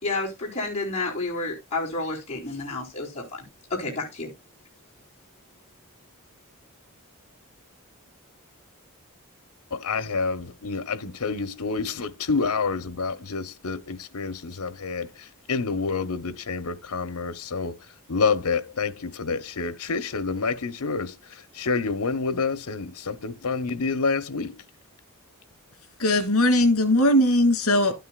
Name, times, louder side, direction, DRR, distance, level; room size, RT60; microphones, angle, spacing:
voice 1, 0.0-3.4 3.7-4.3, left 2 dB, 30° left, 4.2 m, -30 dB
voice 2, 9.7-15.1 15.5-17.8 18.1-21.1 21.6-24.5, left 4 dB, 90° left, 1.0 m, -28 dB
voice 3, 26.0-28.0, left 1 dB, 70° left, 2.6 m, -19 dB
12.0 x 9.4 x 2.4 m
head